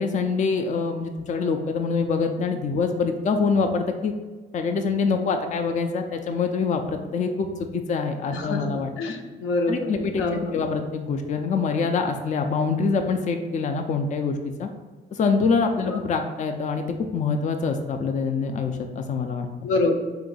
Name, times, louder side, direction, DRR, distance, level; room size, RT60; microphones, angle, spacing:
voice 1, 0.0-4.1 4.5-7.5 7.7-8.9 9.7-14.7 15.1-19.5, left 4 dB, 40° left, 5 dB, 0.4 m, -25 dB
voice 2, 9.0-10.6 15.9-16.0 19.6-19.9, left 3 dB, 80° left, 2 dB, 0.6 m, -26 dB
3.8 x 2.5 x 3.8 m, 1.3 s
cardioid pair, 90°, 20 cm